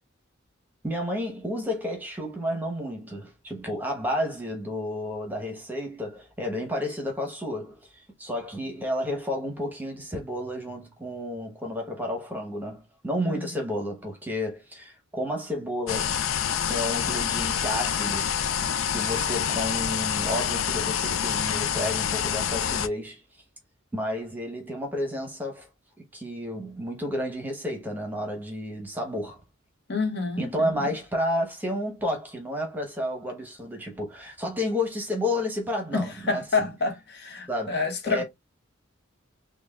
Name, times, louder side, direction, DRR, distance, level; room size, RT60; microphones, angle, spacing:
voice 1, 0.8-16.1 16.7-18.3 18.8-23.2 23.9-25.7 26.1-29.4 30.4-36.7 37.5-37.8 38.1-38.2, left 1 dB, 10° right, 0.9 m, -31 dB
Cassette Tape Play, 15.9-22.9, left 8 dB, 75° left, 0.4 m, -27 dB
voice 2, 29.9-30.9 35.9-38.2, left 4 dB, 55° left, 0.9 m, -28 dB
5.9 x 2.3 x 2.3 m
head